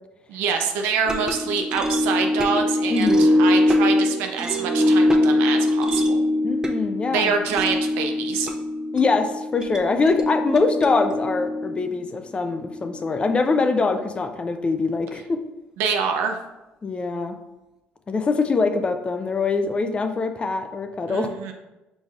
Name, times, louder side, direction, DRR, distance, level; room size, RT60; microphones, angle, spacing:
voice 1, 0.3-6.2 7.1-8.5 15.8-16.4 21.1-21.5, right 6 dB, 85° right, 4 dB, 0.6 m, -25 dB
sound 1, 1.1-13.5, left 1 dB, 20° right, 0.6 m, -22 dB
voice 2, 2.9-3.3 6.4-7.4 8.9-15.4 16.8-17.4 18.1-21.3, left 4 dB, 30° left, 7 dB, 0.5 m, -23 dB
5.0 x 4.0 x 2.4 m, 1.0 s
supercardioid pair, 80°, 4 cm